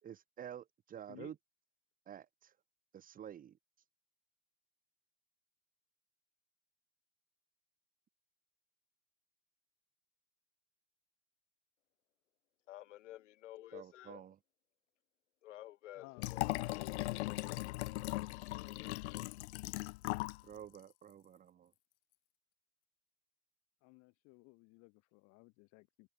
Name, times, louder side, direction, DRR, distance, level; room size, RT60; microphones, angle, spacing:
voice 1, 0.0-1.3 2.1-2.5 2.9-3.6 13.7-14.4 20.4-21.7, right 9 dB, 25° right, 4.4 m, -50 dB
voice 2, 12.7-14.2 15.4-16.5, left 14 dB, 85° left, 4.9 m, -51 dB
voice 3, 15.9-17.9 18.4-19.0 23.8-26.1, left 27 dB, 45° left, 5.4 m, -57 dB
Liquid, 16.2-20.4 20.7-20.8, left 20 dB, 65° left, 1.7 m, -39 dB
supercardioid pair, 150°, 36 cm